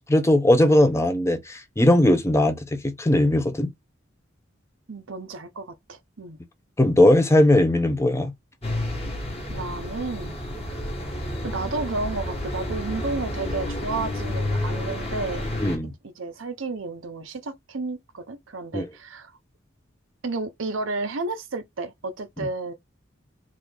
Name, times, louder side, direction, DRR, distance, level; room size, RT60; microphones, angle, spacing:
voice 1, 0.0-3.7 6.8-8.3 15.6-15.9 18.7-18.9, left 1 dB, 15° left, 0.6 m, -19 dB
voice 2, 4.9-6.4 9.5-10.4 11.4-15.4 15.8-19.4 20.2-22.7, right 3 dB, 80° right, 0.7 m, -32 dB
sound 1, 8.6-15.8, left 1 dB, 30° left, 1.3 m, -30 dB
3.6 x 2.5 x 3.3 m
head